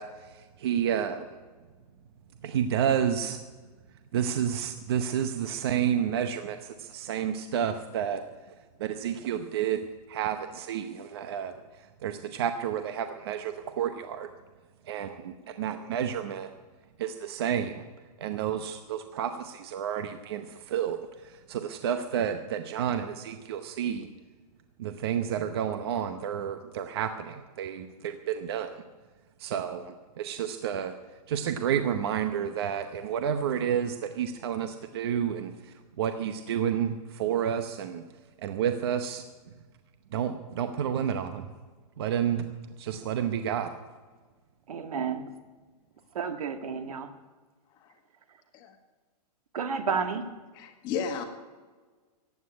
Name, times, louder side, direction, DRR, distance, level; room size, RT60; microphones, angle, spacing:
voice 1, 0.0-1.4 2.4-3.4 4.1-8.2 8.8-9.8 10.1-14.3 14.8-16.5 17.0-17.8 18.2-24.1 24.8-28.8 29.4-30.9 31.3-38.0 38.4-39.5 40.1-41.5 42.0-42.5 42.8-43.7, right 9 dB, 40° right, 8 dB, 0.8 m, -30 dB
voice 2, 44.7-45.3 46.1-47.1 49.5-50.3, right 6 dB, 65° right, 8 dB, 1.7 m, -31 dB
voice 3, 50.5-51.2, left 6 dB, 20° left, 6 dB, 1.4 m, -34 dB
15.5 x 8.5 x 9.6 m, 1.4 s
hypercardioid pair, 175°, 20 cm